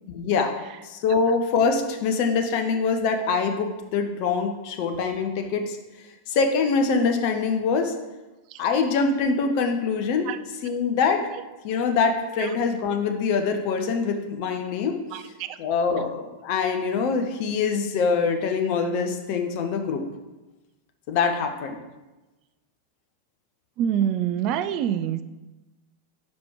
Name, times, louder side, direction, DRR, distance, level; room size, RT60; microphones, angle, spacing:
voice 1, 0.1-0.5 0.8-5.8 6.3-7.9 8.6-10.3 10.6-11.2 11.6-15.3 15.6-20.0 21.1-21.8, left 5 dB, 45° left, 5 dB, 0.7 m, -24 dB
voice 2, 23.8-25.2, right 9 dB, 40° right, 13 dB, 0.4 m, -25 dB
5.2 x 5.0 x 4.7 m, 1.1 s
figure-of-eight pair, 90°, 0 cm